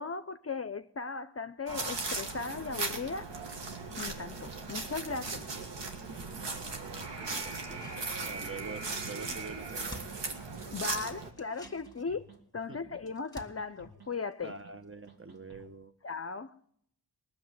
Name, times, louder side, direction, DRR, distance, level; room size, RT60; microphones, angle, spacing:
voice 1, 0.0-3.2 4.0-5.5 9.2-9.3 10.7-12.2 12.5-14.5 16.0-16.5, left 4 dB, 35° left, 13 dB, 0.6 m, -37 dB
sound 1, 1.7-11.3, right 3 dB, 85° right, 1.7 m, -38 dB
voice 2, 6.2-10.1 10.9-11.1 12.7-12.9 14.4-15.9, right 3 dB, 30° right, 9 dB, 1.0 m, -46 dB
sound 2, 7.6-8.7 9.0-9.1 9.4-10.9 11.3-15.1 15.4-15.5, left 2 dB, 10° left, 1.9 m, -53 dB
sound 3, 8.9-9.0 9.3-9.6 9.9-10.7 11.0-11.3 11.6-12.4 12.7-13.1 13.4-14.1 14.4-14.8 15.1-15.7, right 5 dB, 65° right, 2.5 m, -55 dB
19.0 x 7.1 x 9.4 m, 0.71 s
cardioid pair, 55°, 41 cm